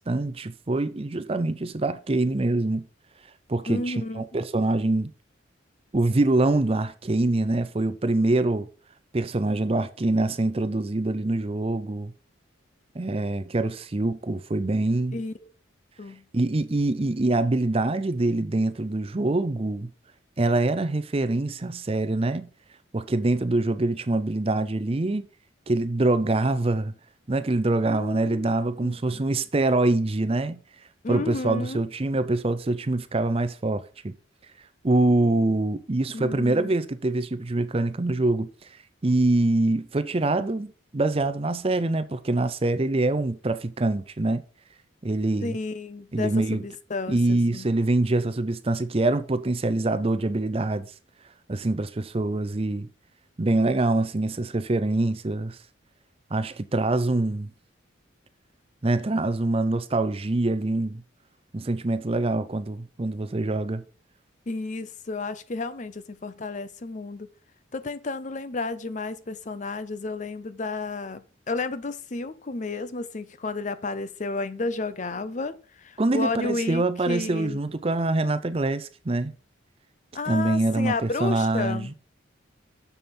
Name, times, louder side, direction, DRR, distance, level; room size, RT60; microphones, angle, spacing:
voice 1, 0.1-2.9 3.5-5.1 5.9-8.7 9.1-12.1 12.9-15.2 16.3-19.9 20.4-22.5 22.9-25.2 25.7-26.9 27.3-30.6 31.1-34.1 34.8-38.5 39.0-44.4 45.0-45.6 46.1-46.6 47.1-50.9 51.5-52.9 53.4-55.6 56.3-57.5 58.8-61.0 61.5-63.8 76.0-79.3 80.3-81.9, right 2 dB, 30° right, 0.5 m, -24 dB
voice 2, 3.7-4.2 15.1-15.5 16.0-16.2 27.9-28.5 28.8-29.2 31.0-31.8 36.1-36.7 45.4-47.7 64.5-67.3 67.7-77.6 80.1-81.9, left 3 dB, 40° left, 0.5 m, -32 dB
7.0 x 7.0 x 4.3 m
head